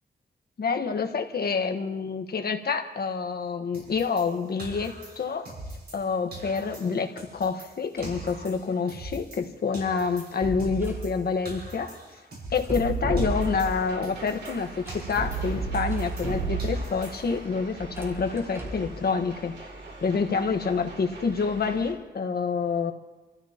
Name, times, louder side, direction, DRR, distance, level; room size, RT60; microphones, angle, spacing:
voice 1, 0.6-5.5 5.9-12.0 12.5-19.5 20.0-22.9, left 5 dB, 65° left, 5 dB, 1.4 m, -27 dB
sound 1, 3.7-6.1 6.3-9.5 9.7-12.9 13.2-16.3 16.6-17.4, right 2 dB, 70° right, 5.9 m, -43 dB
sound 2, 8.0-8.3 10.2-11.1 12.5-13.9 14.9-17.0 17.8-18.9, right 3 dB, 15° right, 4.7 m, -32 dB
sound 3, 13.3-21.9, right 2 dB, 90° right, 3.2 m, -43 dB
29.0 x 14.5 x 3.0 m, 1.2 s
cardioid pair, 85°, 17 cm